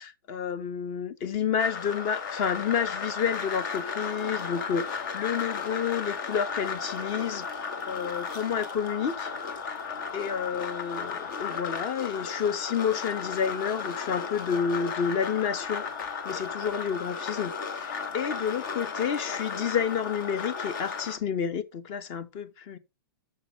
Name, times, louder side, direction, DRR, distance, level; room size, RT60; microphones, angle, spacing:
voice 1, 0.0-7.6 7.9-9.3 10.1-15.8 16.2-22.8, left 7 dB, 40° left, 1.2 m, -30 dB
sound 1, 1.6-21.2, left 5 dB, 60° left, 1.6 m, -34 dB
6.7 x 6.1 x 6.2 m
hypercardioid pair, 135°, 12 cm